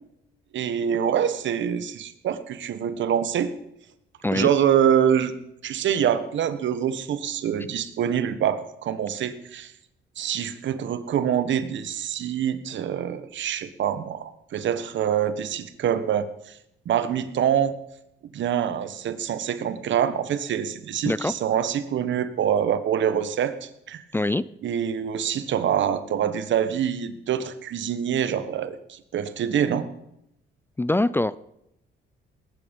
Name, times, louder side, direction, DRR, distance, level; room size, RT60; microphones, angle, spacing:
voice 1, 0.5-3.5 4.3-5.3 5.6-9.7 10.2-16.3 16.8-17.7 18.3-24.0 24.6-29.9, right 9 dB, 70° right, 12 dB, 1.4 m, -25 dB
voice 2, 24.1-24.4 30.8-31.4, left 2 dB, 10° left, 18 dB, 0.5 m, -23 dB
19.5 x 11.0 x 5.4 m, 0.81 s
cardioid pair, 90°, 20 cm